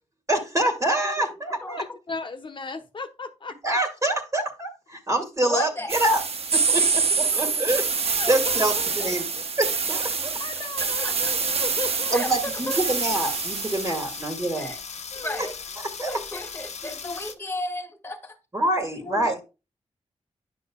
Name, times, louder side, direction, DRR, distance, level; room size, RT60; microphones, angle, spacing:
voice 1, 0.3-1.8 3.6-6.2 6.5-9.2 9.6-10.3 12.1-14.7 15.4-15.5 16.0-16.1 18.5-19.4, right 1 dB, 25° right, 2.0 m, -26 dB
voice 2, 1.8-3.8 8.2-9.4 10.4-12.3 14.5-14.7 15.1-15.5 17.0-17.2 19.0-19.4, left 3 dB, 45° left, 1.1 m, -36 dB
voice 3, 5.4-6.0 6.7-6.9 7.3-7.6 11.0-11.1 12.1-12.8 14.6-14.8 15.1-15.6 16.0-18.4, left 1 dB, 20° left, 1.8 m, -34 dB
sound 1, 5.9-14.4, right 5 dB, 60° right, 0.9 m, -26 dB
sound 2, 12.2-17.3, left 6 dB, 70° left, 0.9 m, -38 dB
10.0 x 6.1 x 2.3 m
cardioid pair, 75°, 12 cm